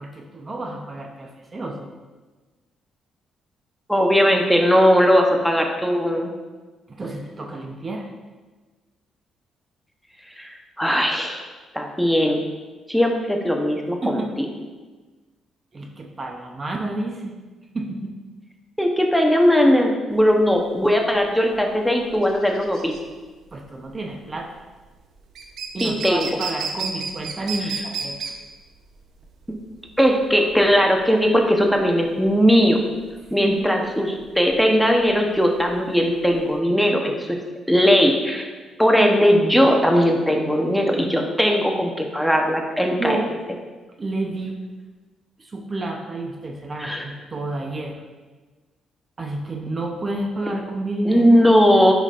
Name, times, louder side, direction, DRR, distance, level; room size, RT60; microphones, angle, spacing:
voice 1, 0.0-1.9 6.9-8.1 14.0-14.3 15.7-17.3 17.7-18.2 23.5-24.6 25.7-28.2 33.4-33.6 43.0-43.3 44.0-44.6 45.4-48.0 49.2-51.3, right 2 dB, 30° right, 2 dB, 0.8 m, -30 dB
voice 2, 3.9-6.3 10.4-11.4 11.7-12.4 12.9-14.5 18.8-22.9 25.8-26.3 30.0-32.8 33.3-37.4 37.7-38.5 38.8-43.2 46.8-47.0 51.1-51.9, equal, ahead, 1 dB, 0.9 m, -18 dB
sound 1, 20.2-36.5, right 5 dB, 70° right, 0.8 m, -34 dB
9.7 x 5.1 x 2.5 m, 1.3 s
cardioid pair, 90°, 0 cm